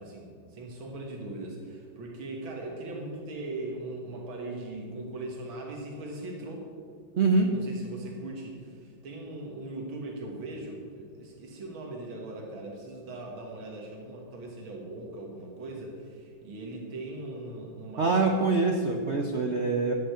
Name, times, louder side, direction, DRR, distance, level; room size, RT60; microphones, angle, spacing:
voice 1, 0.0-6.7 7.5-18.4, right 2 dB, 85° right, 0 dB, 2.4 m, -39 dB
voice 2, 7.2-7.5 18.0-19.9, right 3 dB, 50° right, 2 dB, 0.9 m, -24 dB
11.5 x 6.6 x 9.3 m, 2.1 s
omnidirectional pair, 2.1 m